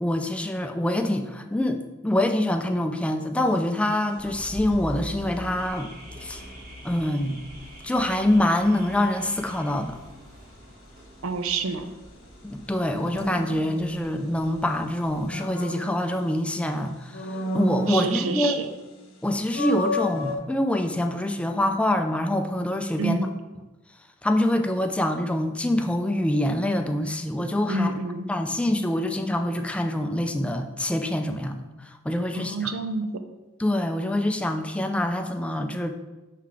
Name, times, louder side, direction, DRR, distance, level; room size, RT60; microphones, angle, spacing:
voice 1, 0.0-5.9 6.2-6.4 6.8-7.4 7.8-10.0 12.4-17.3 17.5-18.6 19.2-23.3 24.2-27.9 28.3-31.6 32.1-32.7 33.6-35.9, left 1 dB, 5° left, 6 dB, 0.3 m, -25 dB
sound 1, 3.5-3.8 13.1-14.5 15.0-16.6 17.1-18.7 19.0-19.1 19.5-20.4, left 1 dB, 75° left, 0.8 m, -31 dB
Car / Alarm, 4.2-15.3, equal, 45° right, 1.2 m, -43 dB
voice 2, 11.2-11.9 17.9-18.7 23.0-23.3 27.7-28.3 32.3-33.1, right 3 dB, 75° right, 9 dB, 0.5 m, -28 dB
5.6 x 3.8 x 4.7 m, 1.1 s
head